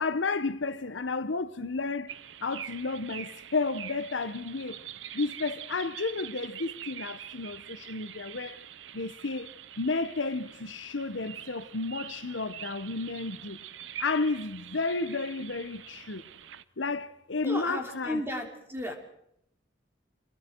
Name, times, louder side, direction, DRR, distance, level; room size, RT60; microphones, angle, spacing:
voice 1, 0.0-2.1 2.4-4.8 5.1-8.6 8.9-13.6 14.0-16.2 16.8-18.2, left 3 dB, 85° left, 1.0 m, -32 dB
sound 1, 2.1-16.6, right 10 dB, 80° right, 0.7 m, -45 dB
voice 2, 17.4-18.9, equal, 15° right, 3.3 m, -34 dB
28.0 x 21.5 x 4.6 m
head